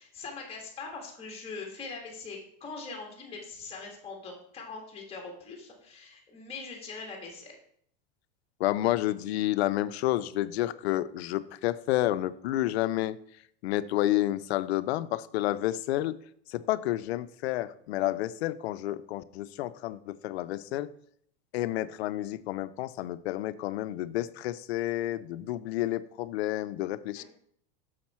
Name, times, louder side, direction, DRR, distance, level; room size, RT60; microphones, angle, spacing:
voice 1, 0.0-7.5 27.1-27.2, left 4 dB, 20° left, 0 dB, 1.8 m, -42 dB
voice 2, 8.6-13.2 13.6-16.2 16.5-20.9 21.5-27.2, left 15 dB, 90° left, 15 dB, 0.5 m, -30 dB
6.4 x 5.9 x 4.3 m, 0.65 s
supercardioid pair, 130°, 31 cm